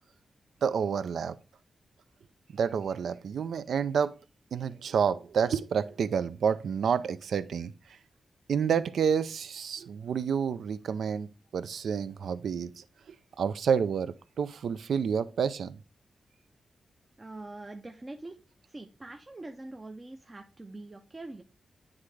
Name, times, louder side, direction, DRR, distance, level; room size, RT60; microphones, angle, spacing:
voice 1, 0.6-1.4 2.5-4.1 4.5-7.7 8.5-12.8 13.4-15.8, right 7 dB, 85° right, 0.4 m, -29 dB
voice 2, 17.2-18.4 18.7-21.4, right 2 dB, 20° right, 0.5 m, -44 dB
9.5 x 3.6 x 3.2 m
wide cardioid pair, 170°, 0 cm